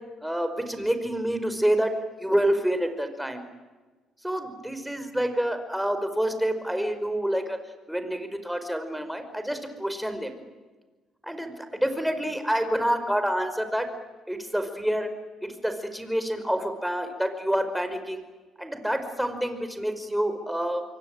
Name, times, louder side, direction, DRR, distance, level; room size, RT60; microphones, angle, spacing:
voice 1, 0.2-1.9 2.2-3.5 4.2-7.6 7.9-10.3 11.3-13.9 14.3-15.1 15.4-18.2 18.6-20.8, equal, ahead, 8 dB, 5.1 m, -27 dB
27.5 x 23.5 x 9.0 m, 1.3 s
cardioid pair, 85°, 0 cm